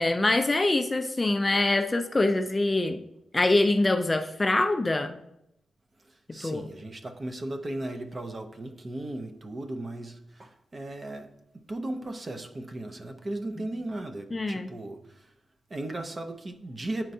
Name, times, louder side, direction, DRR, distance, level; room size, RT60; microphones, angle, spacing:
voice 1, 0.0-3.0 3.3-5.2 6.4-6.6 13.6-13.7 14.3-14.7, left 2 dB, 20° left, 0.4 m, -24 dB
voice 2, 6.3-15.3 15.7-17.1, right 1 dB, 30° right, 0.6 m, -36 dB
9.4 x 4.4 x 2.7 m
wide cardioid pair, 130°, 0 cm